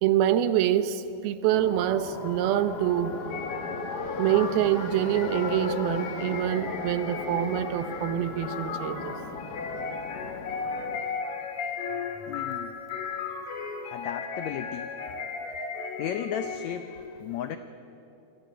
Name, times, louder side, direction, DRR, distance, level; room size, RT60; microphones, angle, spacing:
voice 1, 0.0-3.1 4.2-9.2, right 11 dB, 85° right, 12 dB, 2.8 m, -25 dB
sound 1, 1.5-11.0, left 4 dB, 75° left, 0.9 m, -36 dB
sound 2, 3.3-17.0, left 5 dB, 55° left, 3.7 m, -36 dB
voice 2, 12.3-12.7 13.8-14.9 15.9-17.6, left 9 dB, 90° left, 10 dB, 1.5 m, -35 dB
27.5 x 22.0 x 9.2 m, 2.8 s
omnidirectional pair, 4.3 m